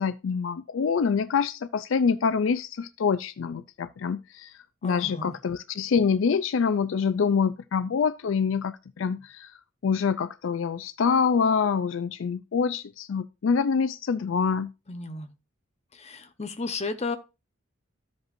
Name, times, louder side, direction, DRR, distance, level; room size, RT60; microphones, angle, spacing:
voice 1, 0.0-4.5 4.8-9.5 9.8-14.7, left 6 dB, 70° left, 0.4 m, -26 dB
voice 2, 4.8-5.3 14.9-15.3 16.0-17.2, left 3 dB, 35° left, 0.9 m, -33 dB
14.0 x 5.3 x 2.6 m
head